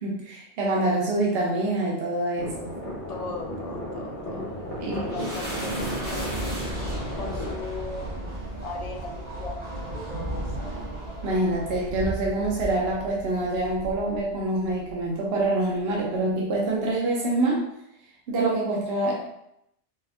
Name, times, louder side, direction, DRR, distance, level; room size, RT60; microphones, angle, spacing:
voice 1, 0.0-2.7 4.8-5.0 11.2-17.6 18.3-19.1, right 2 dB, 65° right, -3 dB, 0.9 m, -26 dB
sound 1, 2.4-7.6, left 1 dB, 35° left, 0.8 m, -35 dB
voice 2, 3.1-6.6 7.1-10.6, left 3 dB, 60° left, 0 dB, 0.4 m, -39 dB
sound 2, 4.5-15.0, right 1 dB, 85° right, 1.7 m, -34 dB
sound 3, 6.7-12.2, right 2 dB, 30° right, 0.8 m, -42 dB
4.2 x 2.5 x 2.3 m, 0.79 s
omnidirectional pair, 1.2 m